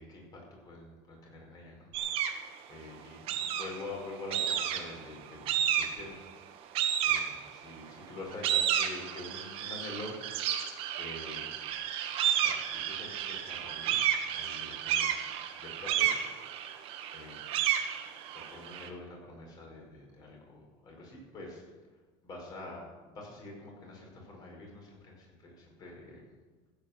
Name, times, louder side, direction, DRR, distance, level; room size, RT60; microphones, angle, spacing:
voice 1, 0.0-1.9 2.7-6.2 7.0-10.6 11.0-11.6 12.3-15.1 15.6-16.1 17.1-17.6 18.3-21.6 22.2-26.2, left 2 dB, 30° left, 0 dB, 5.1 m, -46 dB
sound 1, 1.9-2.5 3.3-3.9 4.3-5.0 5.5-6.1 6.7-7.7 8.2-18.9, right 10 dB, 50° right, 1.6 m, -31 dB
15.0 x 9.2 x 7.3 m, 1.3 s
cardioid pair, 160°, 12 cm